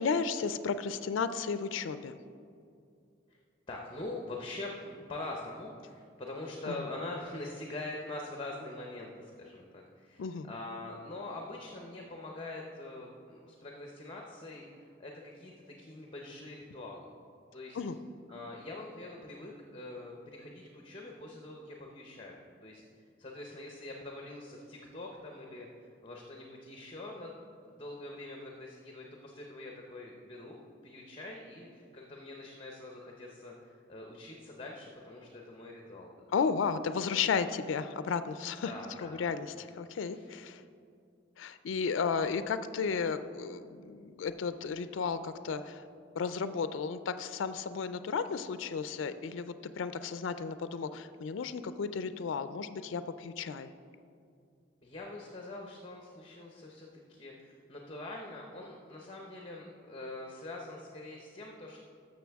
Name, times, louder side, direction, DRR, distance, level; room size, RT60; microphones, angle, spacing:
voice 1, 0.0-2.2 6.6-6.7 10.2-10.5 17.7-18.0 36.3-38.7 39.0-40.6 41.4-45.8 46.1-53.7, left 5 dB, 80° left, 12 dB, 0.4 m, -33 dB
voice 2, 3.7-17.1 17.5-17.8 18.3-22.8 23.2-27.4 27.7-36.1 38.6-39.2 40.0-40.3 54.8-61.8, left 2 dB, 25° left, 0 dB, 0.7 m, -44 dB
13.5 x 6.5 x 3.5 m, 2.4 s
head